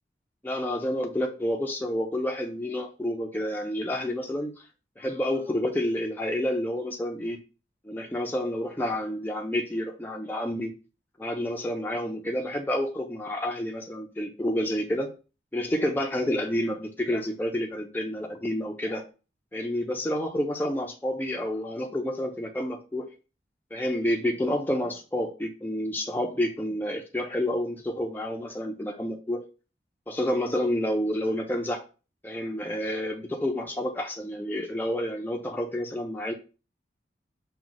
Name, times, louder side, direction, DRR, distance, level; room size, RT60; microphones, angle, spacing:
voice 1, 0.4-4.5 5.0-7.4 7.8-10.7 11.2-15.1 15.5-19.0 19.5-23.1 23.7-29.5 30.1-31.8 32.2-36.3, left 1 dB, 10° left, 1 dB, 0.4 m, -29 dB
5.9 x 2.2 x 3.8 m, 0.34 s
head